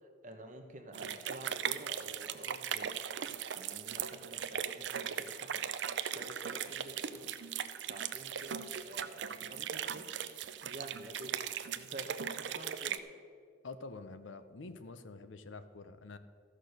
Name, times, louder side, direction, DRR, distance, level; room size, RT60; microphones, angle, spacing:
voice 1, 0.0-2.9 3.6-7.3 7.8-10.1 10.3-11.3 11.7-13.0, right 1 dB, 40° right, 4 dB, 1.2 m, -49 dB
sound 1, 0.9-13.0, right 8 dB, 65° right, 0.5 m, -39 dB
voice 2, 13.6-16.2, left 3 dB, 75° left, 11 dB, 0.7 m, -47 dB
13.5 x 6.5 x 6.6 m, 2.2 s
head